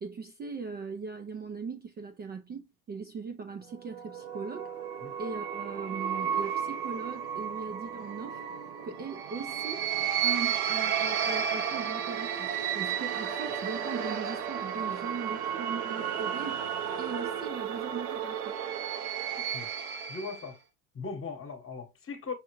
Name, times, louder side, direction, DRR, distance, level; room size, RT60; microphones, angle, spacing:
voice 1, 0.0-4.7 5.2-8.4 8.8-9.9 10.2-16.7 17.0-18.6, right 5 dB, 25° right, 0.4 m, -39 dB
sound 1, 3.7-20.5, right 8 dB, 75° right, 0.9 m, -33 dB
voice 2, 19.4-19.7 20.1-20.6 20.9-22.3, left 4 dB, 30° left, 1.1 m, -39 dB
5.7 x 2.4 x 3.0 m
supercardioid pair, 100°, 45 cm